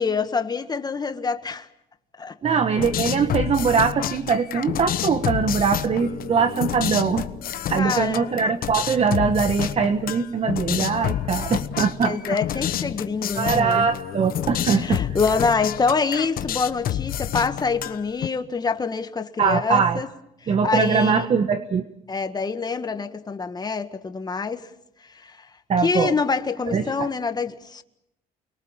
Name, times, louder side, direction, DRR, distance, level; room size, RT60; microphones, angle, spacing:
voice 1, 0.0-1.7 2.2-2.4 7.8-8.4 12.0-13.9 14.5-20.1 20.4-21.3 22.1-24.7 25.0-25.5 25.8-27.8, left 4 dB, 25° left, 1.7 m, -26 dB
voice 2, 2.4-12.2 13.4-15.0 19.4-20.0 20.5-21.8 25.7-26.1 26.7-27.1, right 6 dB, 40° right, 1.4 m, -22 dB
sound 1, 2.8-18.3, left 11 dB, 60° left, 1.1 m, -29 dB
29.0 x 22.5 x 7.3 m
cardioid pair, 110°, 17 cm